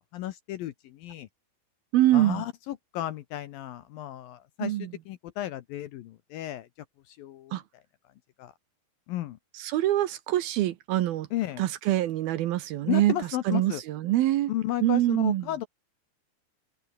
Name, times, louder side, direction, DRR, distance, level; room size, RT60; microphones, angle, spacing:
voice 1, 0.1-1.3 2.1-6.7 7.1-7.8 8.4-8.5 9.1-9.4 11.3-11.6 12.9-13.8 14.5-15.7, left 13 dB, 70° left, 2.3 m, -34 dB
voice 2, 1.9-2.4 4.6-4.9 7.5-7.6 9.6-11.3 11.6-13.1 13.5-14.5 14.8-15.4, right 14 dB, 70° right, 2.6 m, -24 dB
omnidirectional pair, 4.9 m